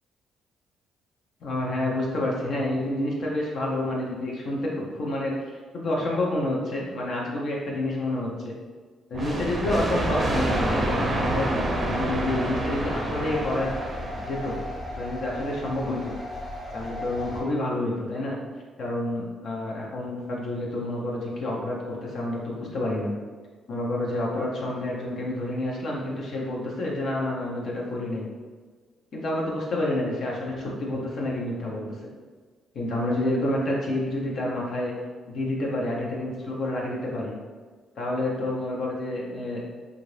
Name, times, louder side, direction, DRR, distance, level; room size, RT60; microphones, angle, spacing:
voice 1, 1.4-8.5 9.1-13.7 14.2-14.6 14.9-16.1 16.7-18.4 18.8-23.1 23.7-28.2 29.1-32.0 32.7-34.9 35.3-37.3 38.0-39.6, left 1 dB, 60° left, -3 dB, 0.6 m, -29 dB
sound 1, 9.1-14.7, right 1 dB, 25° right, 0.5 m, -28 dB
sound 2, 10.1-17.4, left 1 dB, 35° left, 1.3 m, -36 dB
2.7 x 2.4 x 3.2 m, 1.4 s
cardioid pair, 90°, 0 cm